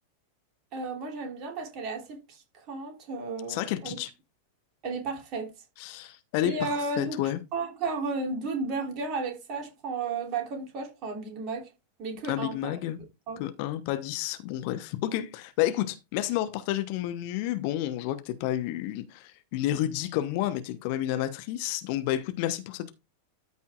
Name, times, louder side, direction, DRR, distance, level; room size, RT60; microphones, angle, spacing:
voice 1, 0.7-4.0 4.8-5.5 6.4-7.2 7.5-11.7 12.0-12.7 13.3-13.4, right 3 dB, 40° right, 2.9 m, -33 dB
voice 2, 3.5-4.1 5.8-7.4 12.3-13.0 13.4-22.9, left 13 dB, 45° left, 0.9 m, -30 dB
13.5 x 5.5 x 2.4 m
figure-of-eight pair, 90°, 0 cm